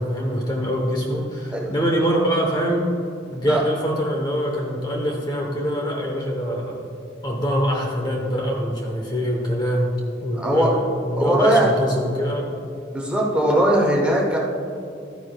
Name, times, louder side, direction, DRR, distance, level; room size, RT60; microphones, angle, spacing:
voice 1, 0.0-2.9 3.3-6.8 7.2-9.9 10.2-12.5, equal, 20° left, 0 dB, 0.9 m, -24 dB
voice 2, 10.3-10.7 11.2-11.7 12.9-14.4, right 1 dB, 5° right, -2 dB, 1.0 m, -19 dB
12.5 x 9.5 x 2.3 m, 2.6 s
head